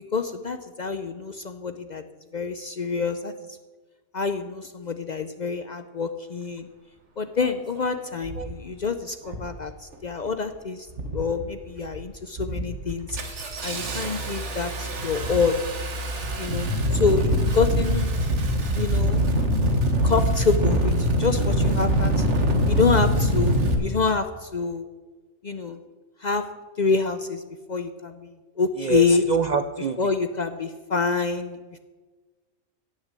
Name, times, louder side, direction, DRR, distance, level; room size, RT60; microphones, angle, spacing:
voice 1, 0.1-2.0 2.3-3.6 4.1-6.7 7.2-10.9 11.1-15.6 16.4-18.2 18.7-19.2 20.0-22.3 22.7-24.9 25.4-25.8 26.2-26.5 26.8-27.4 27.7-29.2 30.0-31.8, left 4 dB, 55° left, 9 dB, 0.5 m, -27 dB
Engine starting, 7.4-7.5 8.2-8.5 9.2-9.6 9.9-10.5 10.9-11.4 11.8-12.0 12.4-23.7, equal, 60° right, 1.7 m, -24 dB
voice 2, 28.8-30.0, right 6 dB, 80° right, 10 dB, 0.4 m, -25 dB
17.0 x 6.4 x 7.5 m, 1.3 s
omnidirectional pair, 1.4 m